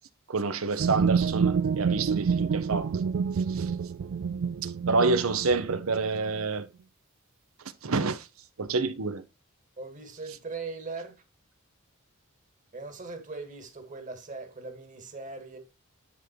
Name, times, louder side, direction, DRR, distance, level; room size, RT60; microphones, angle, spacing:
voice 1, 0.3-3.0 3.5-3.7 4.6-6.7 7.8-8.3 8.6-9.2, right 4 dB, 80° right, 0.9 m, -28 dB
sound 1, 0.8-6.4, right 6 dB, 60° right, 0.3 m, -28 dB
voice 2, 4.9-5.3 9.8-11.2 12.7-15.6, right 4 dB, 40° right, 1.7 m, -39 dB
9.8 x 3.7 x 4.5 m
head